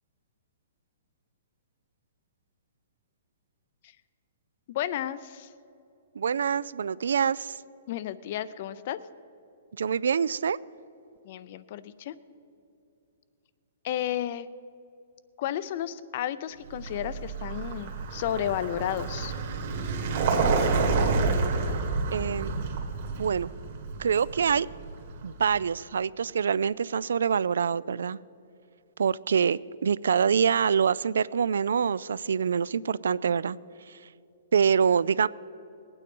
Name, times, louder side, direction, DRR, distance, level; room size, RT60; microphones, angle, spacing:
voice 1, 4.7-5.5 7.9-9.0 11.2-12.1 13.8-14.5 15.4-19.3, left 11 dB, 35° left, 16 dB, 0.4 m, -32 dB
voice 2, 6.2-7.5 9.8-10.6 20.7-21.2 22.1-22.6 23.2-23.5 24.0-24.7 25.2-28.2 29.0-33.6 34.5-35.3, right 7 dB, 90° right, 21 dB, 0.3 m, -25 dB
Vehicle, 16.7-25.5, right 4 dB, 40° right, 1.7 m, -29 dB
19.5 x 9.2 x 5.3 m, 2.8 s
hypercardioid pair, 175°, 0 cm